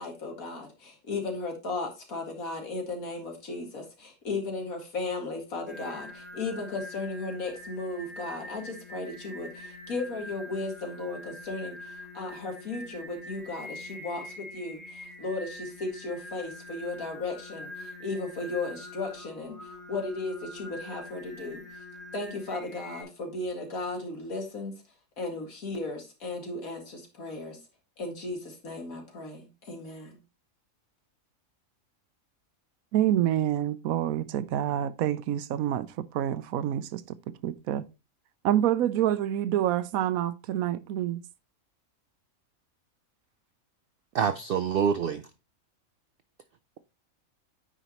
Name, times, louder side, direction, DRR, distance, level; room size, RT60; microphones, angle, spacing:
voice 1, 0.0-21.6 22.1-24.7 25.2-27.6 28.0-30.2, left 3 dB, 75° left, 2.4 m, -35 dB
Singing, 5.7-23.0, left 1 dB, ahead, 1.6 m, -44 dB
voice 2, 32.9-37.2 37.4-37.8 38.4-41.2, right 11 dB, 80° right, 1.0 m, -27 dB
voice 3, 44.1-45.3, right 7 dB, 65° right, 0.5 m, -26 dB
9.2 x 5.0 x 2.9 m
omnidirectional pair, 1.5 m